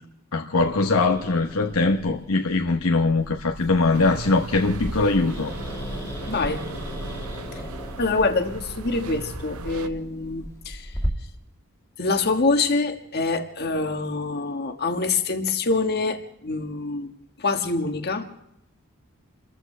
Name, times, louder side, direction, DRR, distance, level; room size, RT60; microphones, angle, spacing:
voice 1, 0.3-5.5, left 3 dB, 70° left, 1.0 m, -22 dB
Growling, 0.6-11.1, equal, 15° left, 2.4 m, -37 dB
sound 1, 3.9-9.9, right 3 dB, 75° right, 0.8 m, -37 dB
voice 2, 6.3-6.6 7.5-7.6 8.0-10.9 12.0-17.1 17.4-18.3, left 3 dB, 45° left, 1.6 m, -25 dB
29.0 x 14.5 x 3.3 m
head